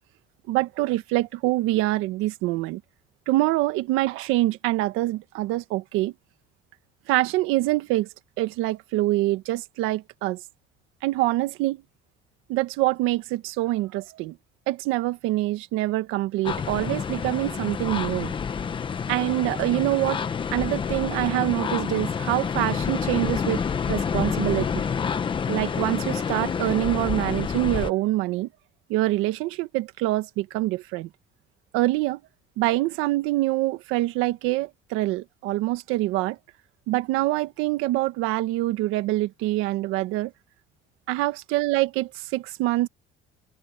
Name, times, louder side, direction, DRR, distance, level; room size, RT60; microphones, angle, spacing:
voice 1, 0.5-2.8 3.3-6.1 7.1-8.1 8.4-10.4 11.0-11.8 12.5-14.4 14.7-18.3 19.1-20.2 20.5-24.9 25.5-28.5 28.9-31.1 31.7-32.2 32.6-36.4 36.9-40.3 41.1-42.9, right 17 dB, 90° right, 1.5 m, -25 dB
sound 1, 16.4-27.9, left 6 dB, 25° left, 1.0 m, -28 dB
cardioid pair, 155°, 20 cm